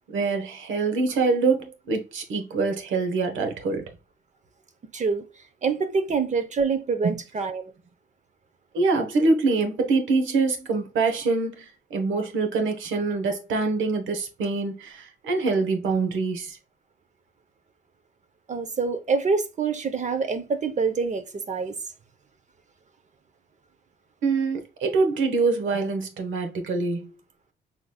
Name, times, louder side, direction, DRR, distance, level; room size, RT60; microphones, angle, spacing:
voice 1, 0.1-3.8 8.7-16.6 24.2-27.1, right 3 dB, 75° right, 1.1 m, -25 dB
voice 2, 4.9-5.2 5.6-7.7 18.5-21.8, right 5 dB, 35° right, 0.8 m, -26 dB
5.0 x 3.8 x 2.2 m
cardioid pair, 90°, 20 cm